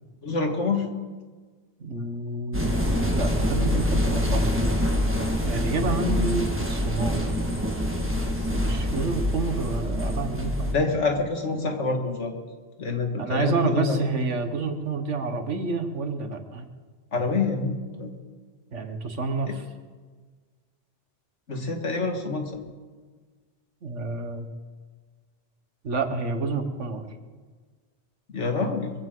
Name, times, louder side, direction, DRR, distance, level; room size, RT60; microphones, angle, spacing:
voice 1, 0.2-0.9 10.7-12.3 12.8-14.0 17.1-18.1 19.5-19.6 21.5-22.6 28.3-28.9, left 3 dB, 85° left, 3 dB, 2.1 m, -26 dB
voice 2, 1.8-4.6 5.4-7.4 8.3-10.9 13.2-16.7 18.7-19.6 23.8-24.5 25.8-27.0, right 3 dB, 85° right, 7 dB, 1.7 m, -29 dB
sound 1, 2.5-10.7, equal, 10° right, 1.8 m, -25 dB
22.5 x 15.5 x 3.9 m, 1.5 s
omnidirectional pair, 1.2 m